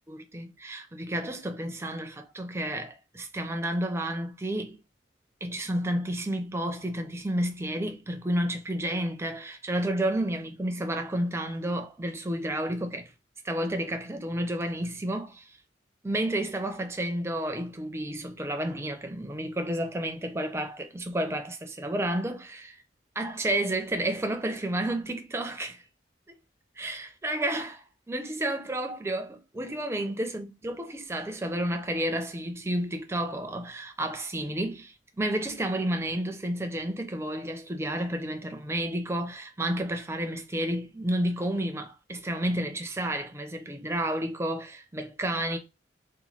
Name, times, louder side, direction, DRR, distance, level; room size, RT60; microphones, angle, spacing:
voice 1, 0.1-4.8 5.4-13.1 13.4-15.6 16.0-22.8 23.2-25.8 26.3-26.4 26.8-45.6, right 1 dB, 15° right, 0.4 m, -31 dB
3.0 x 2.2 x 4.0 m
head